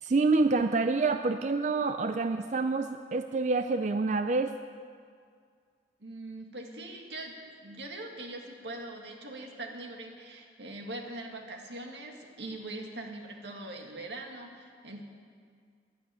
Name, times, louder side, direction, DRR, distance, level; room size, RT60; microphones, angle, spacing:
voice 1, 0.0-4.5, right 3 dB, 40° right, 8 dB, 0.4 m, -27 dB
voice 2, 6.0-15.0, right 2 dB, 85° right, 2 dB, 2.0 m, -42 dB
11.5 x 11.0 x 9.2 m, 2.1 s
head